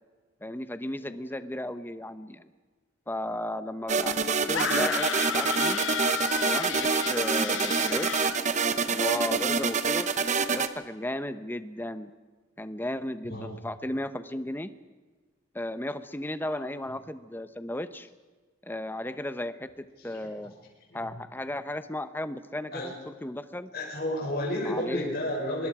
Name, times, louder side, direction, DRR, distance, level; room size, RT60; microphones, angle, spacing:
voice 1, 0.4-2.5 3.1-5.8 6.5-8.3 8.9-10.1 10.5-12.1 12.6-14.7 15.5-18.1 18.6-20.5 20.9-23.7 24.6-25.2, left 1 dB, 10° left, 11 dB, 0.9 m, -35 dB
sound 1, 3.9-10.7, right 5 dB, 40° right, 1.1 m, -26 dB
sound 2, 4.5-8.4, left 8 dB, 80° left, 0.8 m, -32 dB
voice 2, 16.4-16.7 20.0-20.3 20.9-21.2 22.7-22.9 23.7-25.7, left 1 dB, 55° left, -2 dB, 6.7 m, -33 dB
24.5 x 22.5 x 4.9 m, 1.4 s
head